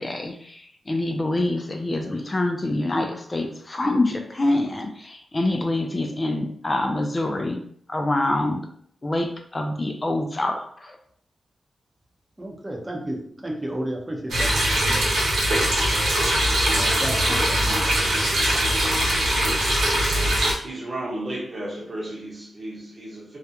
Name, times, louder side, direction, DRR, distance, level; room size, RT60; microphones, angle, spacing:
voice 1, 0.0-7.6 7.9-8.6 9.0-11.0, left 2 dB, 35° left, 3 dB, 0.3 m, -25 dB
voice 2, 12.4-14.5 14.8-15.0 16.7-17.8, right 1 dB, 20° right, 0 dB, 0.7 m, -32 dB
sound 1, 14.3-20.5, right 1 dB, 90° right, 0.9 m, -21 dB
voice 3, 20.6-23.4, right 1 dB, 45° right, -3 dB, 0.9 m, -33 dB
2.3 x 2.1 x 2.8 m, 0.62 s
cardioid pair, 65°, 0 cm